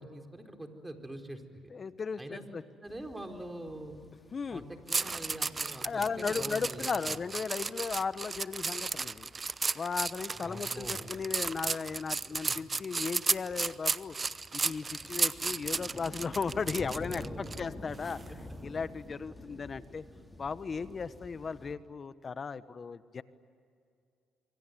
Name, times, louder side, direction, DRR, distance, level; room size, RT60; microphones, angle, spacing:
voice 1, 0.0-1.6 2.2-2.4 2.8-4.0 4.5-7.2 10.4-11.0 12.5-12.6 16.6-18.0 18.3-18.4 19.8-20.3, right 1 dB, 15° right, 5 dB, 4.2 m, -45 dB
voice 2, 1.7-2.6 4.3-4.6 5.8-9.3 9.7-14.2 14.5-18.2 18.6-20.0 20.4-23.2, left 5 dB, 40° left, 14 dB, 1.2 m, -36 dB
sound 1, 2.9-21.7, left 1 dB, 15° left, 3.6 m, -50 dB
sound 2, 4.9-17.6 18.0-18.3, right 4 dB, 30° right, 0.8 m, -33 dB
26.0 x 24.5 x 9.3 m, 2.3 s
supercardioid pair, 80°, 0 cm